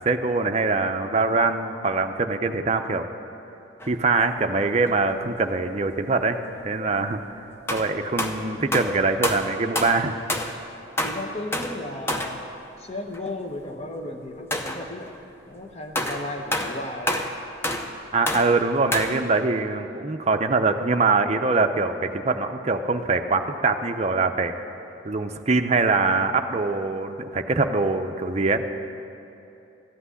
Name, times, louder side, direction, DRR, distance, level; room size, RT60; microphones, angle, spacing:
voice 1, 0.0-3.1 3.9-7.4 7.7-10.1 18.1-24.5 25.0-28.6, right 3 dB, 35° right, 6 dB, 0.5 m, -23 dB
sound 1, 3.8-4.0 4.6-4.9 6.7-6.8 7.7-10.6 11.0-12.5 13.1-13.3 13.6-13.7 14.5-15.2 15.9-19.2, left 1 dB, 10° left, 0.6 m, -28 dB
voice 2, 11.0-15.1 15.4-17.2, left 2 dB, 30° left, 4 dB, 0.9 m, -35 dB
13.5 x 5.9 x 9.7 m, 2.9 s
head